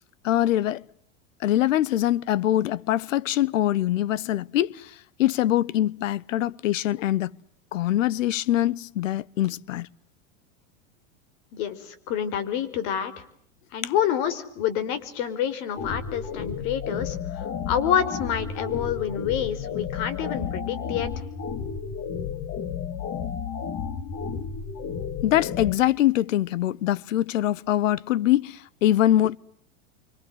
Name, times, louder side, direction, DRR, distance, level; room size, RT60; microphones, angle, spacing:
voice 1, 0.2-0.8 1.4-7.4 7.7-9.9 13.8-13.9 25.2-29.4, left 13 dB, 85° left, 1.1 m, -23 dB
voice 2, 11.5-13.1 13.7-17.1 17.7-21.1, left 9 dB, 55° left, 5.1 m, -27 dB
sound 1, 15.8-25.7, left 7 dB, 35° left, 2.9 m, -32 dB
28.5 x 26.0 x 7.9 m
supercardioid pair, 130°, 38 cm